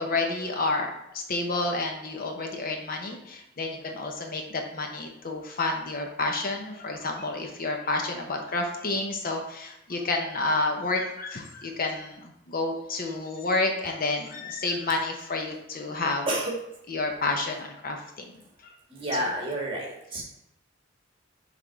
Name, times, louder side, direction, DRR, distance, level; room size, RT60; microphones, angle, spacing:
voice 1, 0.0-16.3 16.9-18.3, left 3 dB, 50° left, 3 dB, 0.7 m, -30 dB
voice 2, 16.3-16.6 18.9-20.2, right 1 dB, 25° right, -1 dB, 1.5 m, -29 dB
6.1 x 3.5 x 4.6 m, 0.84 s
head